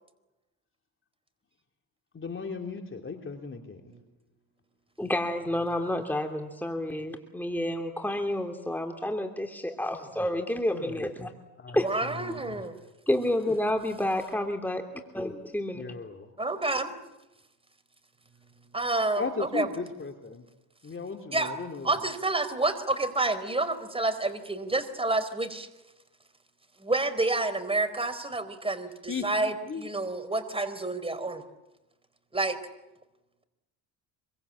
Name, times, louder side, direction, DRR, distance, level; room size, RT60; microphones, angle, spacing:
voice 1, 2.1-3.9 10.7-11.1 11.6-12.6 15.7-16.3 19.2-20.5 20.8-22.0 29.1-29.9, left 4 dB, 30° left, 4 dB, 3.2 m, -37 dB
voice 2, 5.0-11.3 11.7-11.9 13.1-14.8 15.1-15.8, left 1 dB, 5° left, 4 dB, 3.0 m, -29 dB
voice 3, 11.7-12.7 16.4-16.9 18.7-19.7 21.3-21.5 21.8-25.7 26.8-31.4 32.3-32.6, right 2 dB, 15° right, 10 dB, 4.3 m, -29 dB
26.0 x 24.0 x 8.6 m, 0.98 s
supercardioid pair, 80°, 42 cm